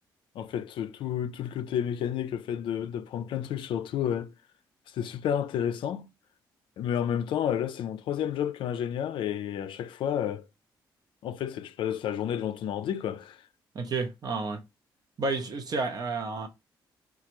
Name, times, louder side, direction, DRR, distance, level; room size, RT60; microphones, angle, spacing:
voice 1, 0.4-4.3 4.9-6.1 6.8-10.4 11.2-13.4, left 9 dB, 75° left, 0.4 m, -31 dB
voice 2, 13.7-14.6 15.2-16.5, right 3 dB, 50° right, 0.6 m, -31 dB
4.1 x 2.3 x 3.0 m
cardioid pair, 75°, 9 cm